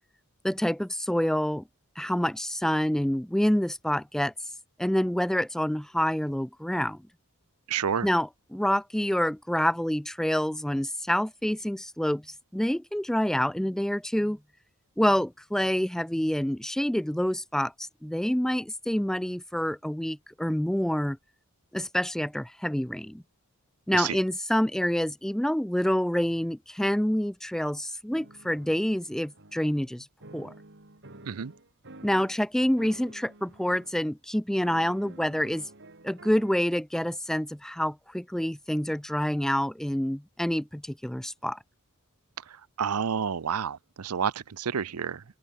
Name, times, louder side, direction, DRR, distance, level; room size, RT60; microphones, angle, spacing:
voice 1, 0.4-1.6 2.0-4.3 4.8-7.0 8.0-14.4 15.0-21.2 21.7-23.2 23.9-30.1 30.3-30.5 32.0-35.7 36.0-41.6, equal, ahead, 0.4 m, -27 dB
voice 2, 7.7-8.1 23.9-24.2 31.2-31.5 42.4-45.2, right 7 dB, 90° right, 0.6 m, -30 dB
sound 1, 28.1-29.9 30.2-32.4 32.8-34.0 34.6-36.6, right 2 dB, 55° right, 2.8 m, -50 dB
open air
head